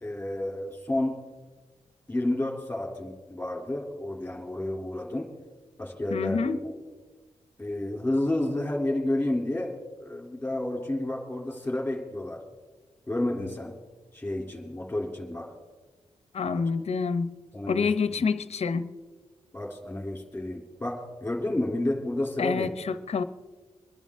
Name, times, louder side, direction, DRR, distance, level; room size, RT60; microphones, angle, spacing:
voice 1, 0.0-1.2 2.1-5.3 5.8-6.7 7.6-12.4 13.1-13.7 14.1-15.5 16.5-16.7 17.5-17.9 18.2-18.3 19.5-22.7, left 1 dB, 10° left, 1 dB, 2.8 m, -30 dB
voice 2, 6.1-6.6 16.3-17.3 17.7-18.9 22.4-23.2, left 5 dB, 60° left, 12 dB, 0.8 m, -27 dB
24.0 x 11.0 x 3.6 m, 1.3 s
cardioid pair, 85°, 12 cm